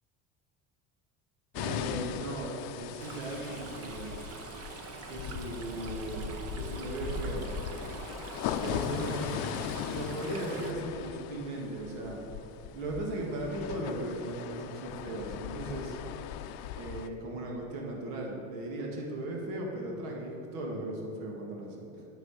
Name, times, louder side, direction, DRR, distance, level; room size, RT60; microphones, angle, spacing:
sound 1, 1.5-17.1, left 10 dB, 65° left, 0.6 m, -39 dB
voice 1, 1.5-4.2 5.1-7.5 8.6-9.4 9.8-12.2 12.7-16.0 16.8-22.1, right 1 dB, 80° right, -1 dB, 2.0 m, -37 dB
Stream, 3.0-10.7, right 4 dB, 40° right, 0.9 m, -42 dB
9.5 x 6.1 x 6.6 m, 2.9 s
supercardioid pair, 125°, 38 cm